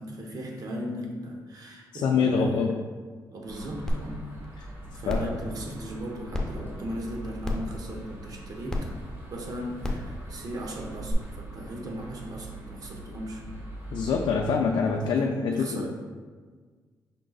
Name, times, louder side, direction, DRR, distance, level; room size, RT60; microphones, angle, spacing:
voice 1, 0.0-2.8 3.3-4.4 4.9-8.9 9.3-13.5 15.0-15.1 15.5-15.9, equal, 55° right, 1 dB, 0.8 m, -37 dB
voice 2, 1.9-2.8 5.1-5.3 13.9-15.9, left 5 dB, 80° left, 1 dB, 0.4 m, -25 dB
sound 1, 3.5-14.4, right 2 dB, 30° right, 1.1 m, -43 dB
sound 2, 3.9-4.0 4.4-4.5 5.1-5.3 6.3-6.4 7.4-7.7 8.7-8.8 9.8-10.0 11.1-11.2, left 1 dB, 10° left, 0.6 m, -28 dB
5.3 x 3.8 x 2.4 m, 1.5 s
cardioid pair, 90°, 8 cm